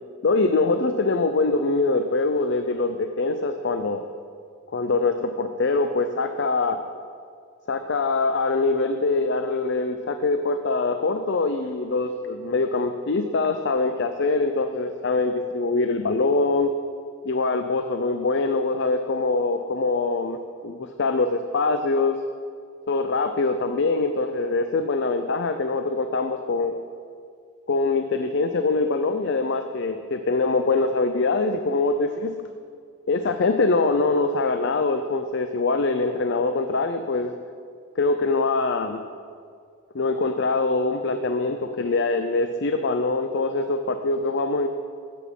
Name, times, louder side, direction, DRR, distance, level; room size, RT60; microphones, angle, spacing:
voice 1, 0.2-4.0 4.7-6.8 7.7-16.7 17.3-22.2 22.9-26.7 27.7-32.3 33.1-37.3 38.0-39.0 39.9-44.7, left 3 dB, 55° left, 8 dB, 0.5 m, -23 dB
14.0 x 8.4 x 5.4 m, 2.2 s
head